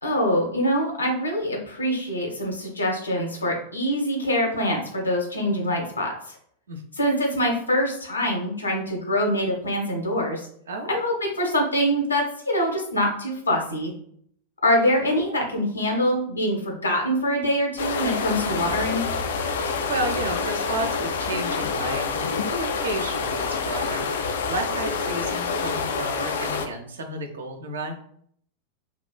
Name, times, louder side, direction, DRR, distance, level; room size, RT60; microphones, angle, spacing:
voice 1, 0.0-6.3 7.0-10.5 10.9-13.9 14.6-19.0, equal, 80° left, 1 dB, 0.9 m, -24 dB
sound 1, 17.8-26.7, left 5 dB, 60° left, 0.4 m, -27 dB
voice 2, 19.6-28.0, right 2 dB, 65° right, 5 dB, 0.6 m, -32 dB
4.4 x 2.4 x 2.3 m, 0.63 s
figure-of-eight pair, 90°, 0 cm